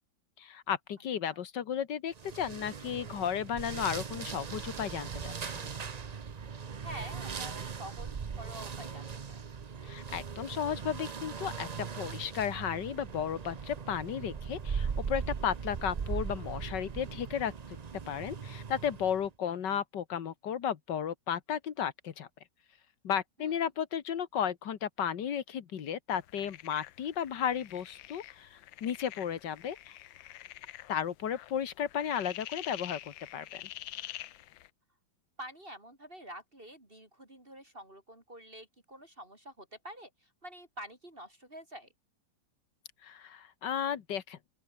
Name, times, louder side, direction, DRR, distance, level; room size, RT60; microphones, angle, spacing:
voice 1, 0.4-5.7 9.8-17.5 18.1-22.3 23.0-29.9 30.9-33.7 43.0-44.4, left 8 dB, 70° left, 2.0 m, -34 dB
sound 1, 2.1-19.3, right 6 dB, 90° right, 0.3 m, -39 dB
voice 2, 6.8-9.4 23.4-23.6 35.4-41.9, right 1 dB, 30° right, 4.9 m, -47 dB
sound 2, 26.2-34.7, left 14 dB, 90° left, 1.5 m, -47 dB
open air
omnidirectional pair, 2.0 m